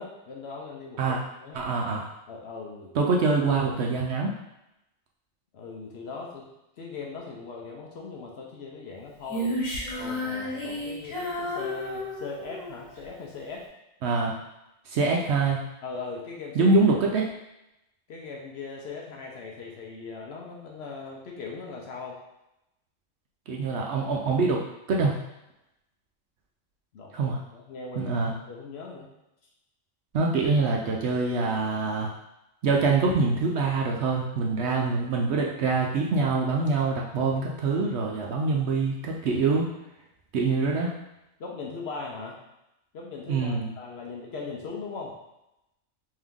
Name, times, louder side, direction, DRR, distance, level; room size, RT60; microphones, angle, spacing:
voice 1, 0.0-1.6 2.3-3.1 5.5-6.5 6.8-9.5 10.0-13.7 15.8-16.8 18.1-22.2 26.9-29.1 41.4-42.4 42.9-45.2, left 4 dB, 60° left, -2 dB, 0.8 m, -39 dB
voice 2, 1.5-2.1 3.0-4.3 14.0-14.3 14.9-15.6 16.6-17.3 23.5-24.6 24.9-25.2 27.1-27.4 28.0-28.3 30.1-32.1 32.6-39.7 40.3-40.9 43.3-43.7, right 3 dB, 65° right, -1 dB, 0.7 m, -24 dB
Female singing, 9.3-12.8, left 1 dB, 85° left, 1.6 m, -32 dB
3.6 x 2.8 x 3.5 m, 0.90 s
omnidirectional pair, 1.4 m